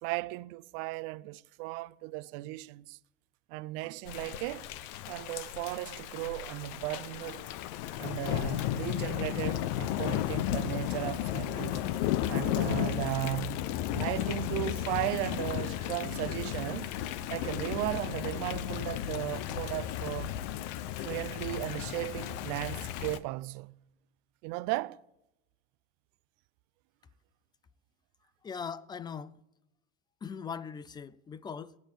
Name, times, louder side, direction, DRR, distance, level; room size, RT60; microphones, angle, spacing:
voice 1, 0.0-3.0 3.5-4.7 5.1-7.5 8.0-11.8 12.3-13.7 13.9-16.9 17.3-20.3 21.0-23.7 24.4-25.0, right 19 dB, 80° right, 0.5 m, -36 dB
Thunder / Rain, 4.1-23.2, left 12 dB, 85° left, 0.8 m, -34 dB
voice 2, 28.4-29.3 30.2-31.8, left 6 dB, 20° left, 0.4 m, -40 dB
16.0 x 9.5 x 8.4 m
cardioid pair, 150°, 21 cm